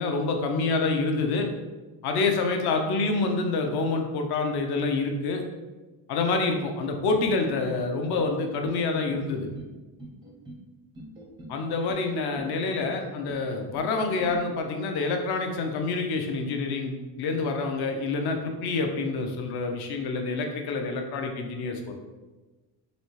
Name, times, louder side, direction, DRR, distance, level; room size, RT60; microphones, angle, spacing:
voice 1, 0.0-1.5 2.0-5.4 6.1-9.5 11.5-21.9, left 3 dB, 60° left, 4 dB, 0.7 m, -27 dB
sound 1, 7.2-7.9 8.2-8.8 9.1-9.7 10.0-10.6 11.0-11.6 11.9-12.5 12.8-13.4 13.7-14.4, right 1 dB, 10° right, 0.4 m, -43 dB
4.1 x 3.3 x 3.1 m, 1.2 s
cardioid pair, 155°, 43 cm